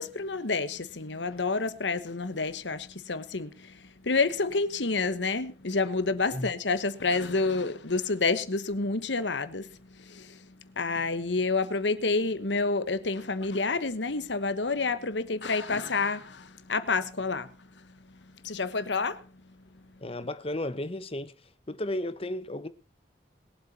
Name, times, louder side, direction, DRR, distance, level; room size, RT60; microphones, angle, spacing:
voice 1, 0.0-19.8, left 3 dB, 85° left, 1.2 m, -29 dB
voice 2, 20.0-21.3 21.7-22.7, left 1 dB, 30° left, 1.0 m, -33 dB
21.5 x 8.0 x 4.2 m
head